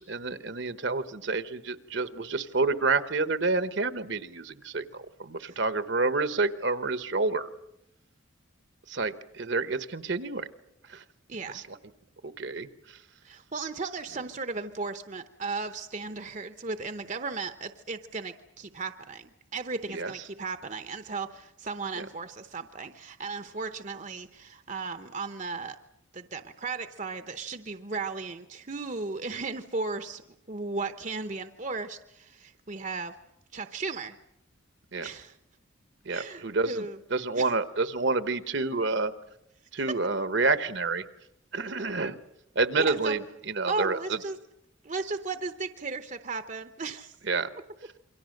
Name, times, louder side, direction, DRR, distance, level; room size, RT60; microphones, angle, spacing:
voice 1, 0.0-7.5 8.9-10.5 10.9-11.0 11.5-11.8 12.2-13.0 19.9-20.1 21.9-22.1 34.9-35.1 36.0-39.1 39.7-41.0 41.5-42.2 42.5-44.2 47.2-47.5, right 3 dB, 60° right, 12 dB, 1.1 m, -29 dB
voice 2, 11.3-11.6 13.2-25.8 26.1-30.2 30.5-33.1 33.5-34.2 35.0-35.4 36.1-37.0 37.4-37.5 42.8-43.1 43.7-44.4 44.8-47.1, right 4 dB, 35° right, 9 dB, 0.8 m, -35 dB
28.0 x 23.5 x 6.5 m, 0.80 s
head